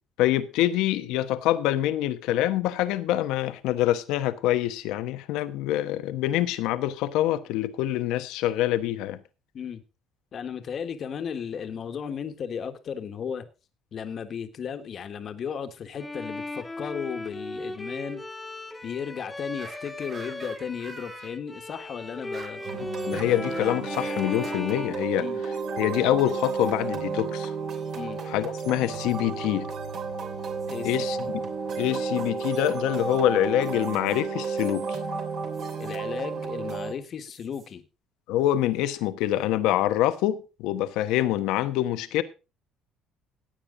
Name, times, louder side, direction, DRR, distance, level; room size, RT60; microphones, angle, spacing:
voice 1, 0.2-9.2 23.1-25.3 25.8-27.5 28.3-29.7 30.8-31.3 31.8-35.0 38.3-42.2, left 13 dB, 85° left, 1.0 m, -25 dB
voice 2, 10.3-13.5 13.9-18.2 18.8-22.6 25.2-25.4 27.9-28.2 30.7-30.9 35.8-37.8, left 7 dB, 45° left, 1.5 m, -35 dB
Bowed string instrument, 16.0-25.8, left 2 dB, 10° left, 1.5 m, -37 dB
sound 1, 19.6-21.3 22.3-22.7 23.1-23.8 24.2-24.7 26.5-26.8 29.0-29.1 30.5-31.0 32.1-32.5 33.8-34.2 35.5-35.9 37.2-37.7 38.8-39.0, right 5 dB, 40° right, 1.5 m, -48 dB
sound 2, 22.6-36.9, right 4 dB, 60° right, 2.9 m, -32 dB
15.5 x 8.8 x 3.8 m
cardioid pair, 125°, 0 cm